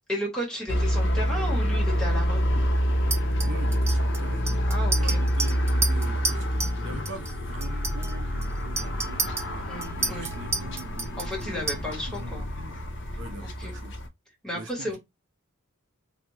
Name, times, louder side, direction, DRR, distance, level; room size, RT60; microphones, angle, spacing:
voice 1, 0.1-2.4 4.7-5.2 9.7-10.3 11.2-12.7 13.4-13.7 14.4-15.0, equal, 5° left, 1.2 m, -33 dB
sound 1, 0.7-14.1, equal, 55° left, 0.5 m, -27 dB
Chink clink, 3.1-6.8 7.1-7.3 7.6-12.2, right 3 dB, 10° right, 0.3 m, -32 dB
voice 2, 3.4-4.5 5.0-9.7 10.0-11.5 11.8-12.4 13.2-13.9 14.5-15.0, right 2 dB, 55° right, 0.6 m, -43 dB
3.3 x 2.2 x 3.1 m
head